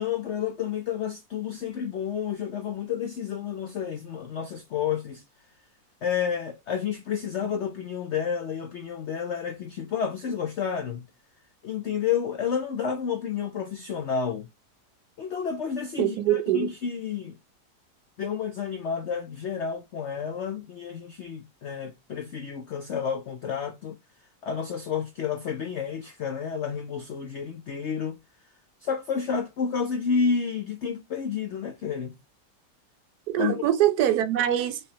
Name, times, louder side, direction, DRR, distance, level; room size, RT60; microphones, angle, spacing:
voice 1, 0.0-5.2 6.0-11.1 11.6-14.5 15.2-17.3 18.2-24.0 24.4-28.2 28.8-32.2 33.4-33.6, left 7 dB, 90° left, 0.6 m, -30 dB
voice 2, 16.0-16.7 33.3-34.8, right 12 dB, 70° right, 1.1 m, -23 dB
4.9 x 2.9 x 2.8 m
omnidirectional pair, 1.9 m